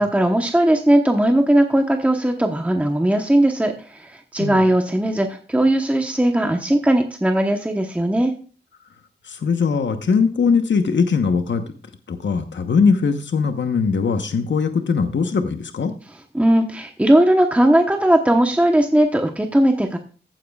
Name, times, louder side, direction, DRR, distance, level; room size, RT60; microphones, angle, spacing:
voice 1, 0.0-8.3 16.3-20.0, right 1 dB, 5° right, 4 dB, 1.0 m, -18 dB
voice 2, 9.2-11.6 12.1-15.9, left 5 dB, 75° left, 7 dB, 1.1 m, -20 dB
15.0 x 9.2 x 2.4 m, 0.38 s
wide cardioid pair, 140°, 19 cm